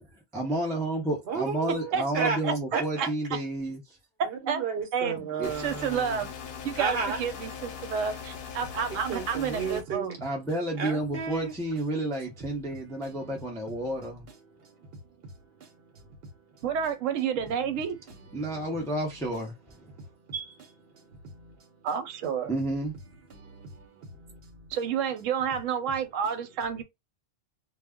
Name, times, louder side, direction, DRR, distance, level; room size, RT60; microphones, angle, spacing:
voice 1, 0.3-3.8 5.4-5.5 10.2-14.3 18.3-19.5 20.3-20.6 22.5-23.0, right 1 dB, 5° left, 0.4 m, -31 dB
voice 2, 1.3-2.4 2.7-3.1 4.2-6.1 6.8-7.2 8.9-10.1 10.8-11.5 12.6-12.8 13.0-13.5 14.3-16.2 16.5-16.6 18.1-18.7 19.9-20.0 20.9-21.7 23.3-24.7, right 5 dB, 60° right, 0.9 m, -35 dB
voice 3, 1.9-2.5 3.0-3.1 4.5-4.6 4.9-5.3 5.6-6.3 6.6-10.1 16.6-18.0 21.8-22.5 24.7-26.8, right 7 dB, 85° right, 0.9 m, -30 dB
sound 1, 5.4-9.8, left 7 dB, 60° left, 0.7 m, -40 dB
2.3 x 2.0 x 3.4 m
omnidirectional pair, 1.3 m